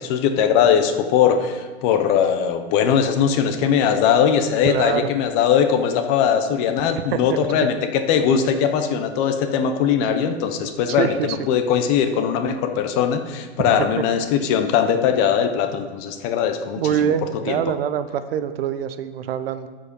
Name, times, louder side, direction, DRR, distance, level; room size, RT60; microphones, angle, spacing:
voice 1, 0.0-7.8 8.1-17.1 17.5-17.6, left 8 dB, 25° left, 7 dB, 0.6 m, -20 dB
voice 2, 4.6-5.1 6.9-7.4 11.0-11.4 13.8-13.9 16.8-19.7, right 9 dB, 60° right, 12 dB, 0.8 m, -24 dB
12.5 x 5.1 x 5.2 m, 1.4 s
hypercardioid pair, 150°, 34 cm